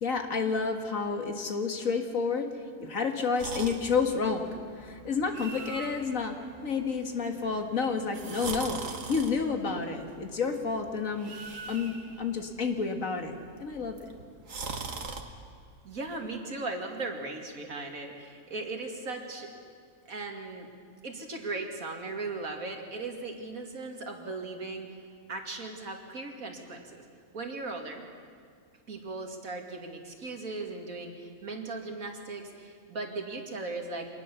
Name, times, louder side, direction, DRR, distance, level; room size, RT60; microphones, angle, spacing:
voice 1, 0.0-2.5 2.8-11.3 11.7-14.1, left 5 dB, 75° left, 5 dB, 2.2 m, -30 dB
sound 1, 3.4-15.2, right 4 dB, 70° right, 2.0 m, -42 dB
voice 2, 15.8-19.5 20.1-20.7 21.0-25.0 25.3-27.0 27.3-28.0 28.9-34.1, right 3 dB, 90° right, 3 dB, 2.8 m, -38 dB
26.0 x 19.5 x 7.0 m, 2.1 s
omnidirectional pair, 1.4 m